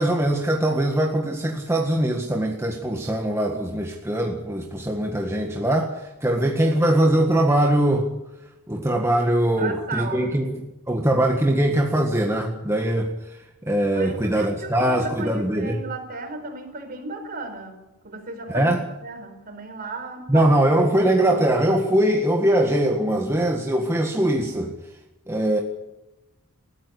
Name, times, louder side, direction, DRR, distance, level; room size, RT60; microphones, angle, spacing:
voice 1, 0.0-8.1 8.7-10.5 10.9-13.4 13.6-15.8 18.5-18.8 20.3-24.7 25.3-25.6, right 1 dB, 10° right, 1 dB, 1.8 m, -21 dB
voice 2, 6.3-6.9 9.6-10.4 13.9-17.8 18.0-18.7 19.0-20.5 21.0-21.3, right 3 dB, 40° right, 5 dB, 5.0 m, -35 dB
21.0 x 14.0 x 9.8 m, 0.96 s
head